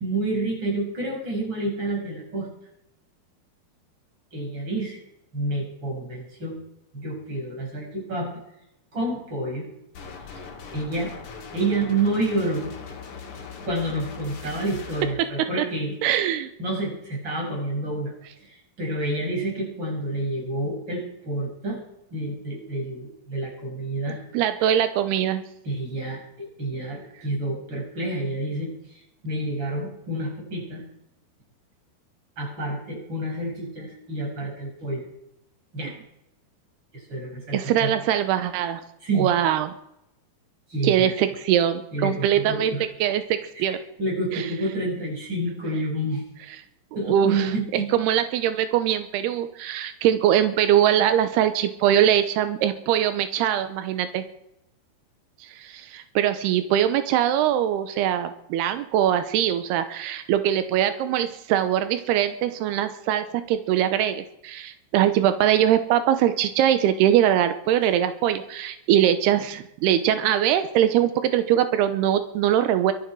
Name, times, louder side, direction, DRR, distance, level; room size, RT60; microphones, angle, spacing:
voice 1, 0.0-2.5 4.3-5.0 5.3-6.6 6.9-8.3 8.9-9.7 10.3-10.5 10.7-11.1 11.5-12.7 13.7-15.9 16.6-21.8 22.1-24.2 25.6-30.8 32.4-35.1 35.7-35.9 36.9-37.9 39.0-39.3 40.7-41.1 41.9-42.8 43.5-46.2 46.9-47.9, right 2 dB, 30° right, -1 dB, 6.6 m, -29 dB
sound 1, 9.9-15.1, left 5 dB, 55° left, 3.4 m, -40 dB
voice 2, 16.0-16.5 24.3-25.4 37.5-38.8 39.2-39.7 40.8-43.8 44.3-44.5 47.0-54.2 55.5-72.9, right 10 dB, 90° right, 10 dB, 3.0 m, -22 dB
23.5 x 10.5 x 4.7 m, 0.80 s
omnidirectional pair, 4.6 m